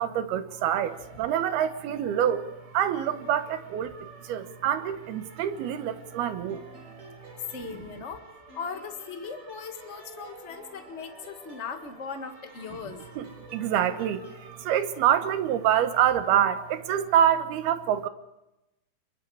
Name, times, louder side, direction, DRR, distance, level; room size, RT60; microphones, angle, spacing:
voice 1, 0.0-2.5 2.7-6.6 13.2-14.2 14.6-18.1, right 10 dB, 80° right, 11 dB, 3.1 m, -26 dB
sound 1, 0.8-17.3, right 3 dB, 55° right, 5.0 m, -51 dB
sound 2, 6.5-8.2 8.5-12.1 12.5-14.5, right 2 dB, 35° right, 6.4 m, -52 dB
voice 2, 7.5-8.3 8.5-13.0, left 5 dB, 60° left, 6 dB, 0.7 m, -38 dB
27.0 x 23.0 x 4.8 m, 0.91 s
omnidirectional pair, 4.6 m